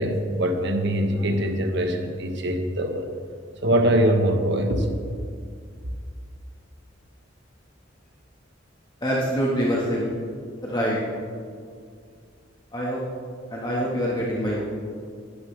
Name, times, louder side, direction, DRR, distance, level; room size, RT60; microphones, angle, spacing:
voice 1, 0.0-3.1 3.6-4.9, right 1 dB, 60° right, 5 dB, 1.4 m, -23 dB
voice 2, 9.0-10.1 10.6-11.0 12.7-13.0 13.5-14.6, equal, 20° left, -5 dB, 1.7 m, -25 dB
19.0 x 12.0 x 3.5 m, 2.2 s
head